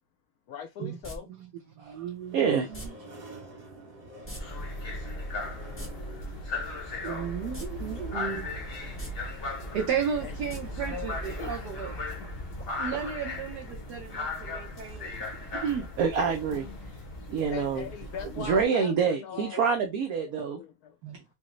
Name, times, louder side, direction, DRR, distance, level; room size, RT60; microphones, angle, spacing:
voice 1, 0.5-1.3 2.4-2.5 10.2-10.3 17.5-19.7 20.6-21.0, left 7 dB, 75° left, 0.8 m, -40 dB
sound 1, 1.0-1.2 2.7-2.9 4.2-4.4 4.7-4.8 5.6-5.9 7.5-7.7 8.0-8.1 8.9-9.1 10.5-10.6 10.9-11.0, right 1 dB, 15° left, 0.5 m, -39 dB
sound 2, 1.8-16.7, right 1 dB, 45° right, 1.9 m, -51 dB
voice 2, 1.8-2.9 7.0-8.5 9.7-12.0 12.8-15.1 15.5-15.9 21.0-21.2, right 7 dB, 65° right, 1.3 m, -34 dB
voice 3, 2.3-2.7 16.0-16.6 17.3-17.8 18.4-20.6, right 6 dB, 85° right, 0.8 m, -26 dB
sound 3, 4.4-18.6, left 2 dB, 45° left, 0.7 m, -37 dB
4.9 x 2.1 x 3.1 m
omnidirectional pair, 2.1 m